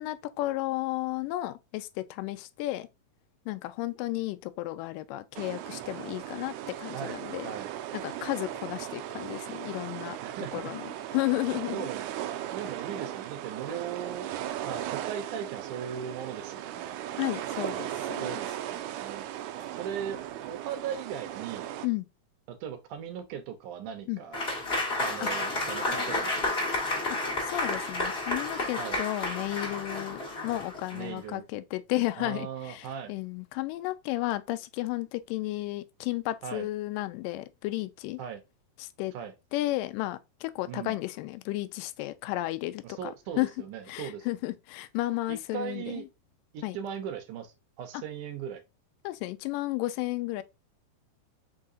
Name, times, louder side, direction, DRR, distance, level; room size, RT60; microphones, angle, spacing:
voice 1, 0.0-2.9 3.5-7.5 7.9-10.2 10.5-11.9 17.2-18.4 21.8-22.1 24.1-24.2 25.2-25.3 27.4-38.2 38.8-39.1 39.5-43.5 43.9-46.0 46.6-46.8 49.0-50.4, left 17 dB, 80° left, 2.0 m, -33 dB
sound 1, 5.3-21.9, right 12 dB, 90° right, 1.7 m, -37 dB
voice 2, 10.2-10.5 11.7-12.0 12.5-14.3 14.6-17.0 18.2-19.3 19.7-20.2 20.5-21.7 22.5-24.5 25.0-26.9 28.8-29.0 30.9-31.5 32.2-33.1 36.4-36.7 38.2-38.4 39.1-39.3 40.7-41.0 42.8-44.3 45.3-46.1 46.5-48.6, right 8 dB, 70° right, 2.0 m, -38 dB
Applause / Crowd, 24.3-31.1, left 2 dB, 35° left, 0.9 m, -31 dB
5.6 x 3.7 x 2.6 m
omnidirectional pair, 4.3 m